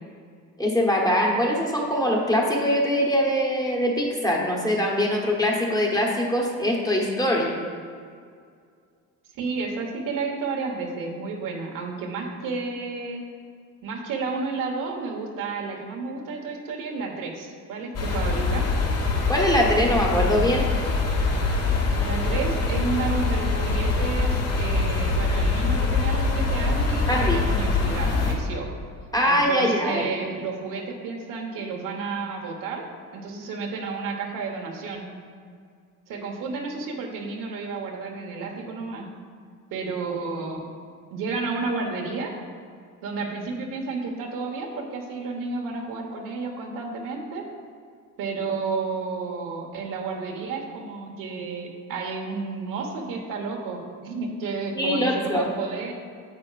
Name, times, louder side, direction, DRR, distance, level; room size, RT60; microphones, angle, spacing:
voice 1, 0.6-7.5 19.3-20.7 27.1-27.4 29.1-30.1 54.7-55.5, equal, 10° left, -2 dB, 1.0 m, -22 dB
voice 2, 9.3-13.2 13.8-18.6 22.0-28.7 29.2-32.8 33.1-35.1 36.1-39.1 39.7-40.7 41.1-42.3 43.0-47.4 48.2-55.9, right 4 dB, 85° right, 1 dB, 1.3 m, -31 dB
sound 1, 17.9-28.3, left 3 dB, 50° left, 1.4 m, -24 dB
9.5 x 7.7 x 2.5 m, 2.2 s
cardioid pair, 140°, 32 cm